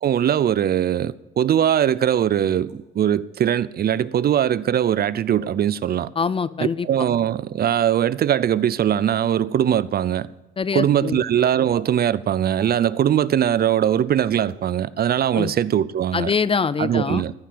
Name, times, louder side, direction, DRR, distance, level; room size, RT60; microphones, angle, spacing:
voice 1, 0.0-6.1 6.8-10.3 10.7-16.3 16.8-17.3, right 10 dB, 50° right, 0.5 m, -21 dB
sound 1, 1.6-1.7 2.6-2.7 4.1-4.4 5.3-5.5 6.3-6.5 7.5-7.8 8.4-8.6 9.3-9.4 10.0-10.2 10.9-11.0 11.7-11.9 12.6-12.7 13.5-13.6 14.4-14.5 15.3-15.4 15.9-16.0, right 6 dB, 80° right, 2.8 m, -44 dB
voice 2, 6.2-6.9 10.6-11.2 15.3-15.5 16.1-17.2, left 5 dB, 30° left, 0.5 m, -24 dB
14.0 x 5.9 x 8.6 m
cardioid pair, 90°, 20 cm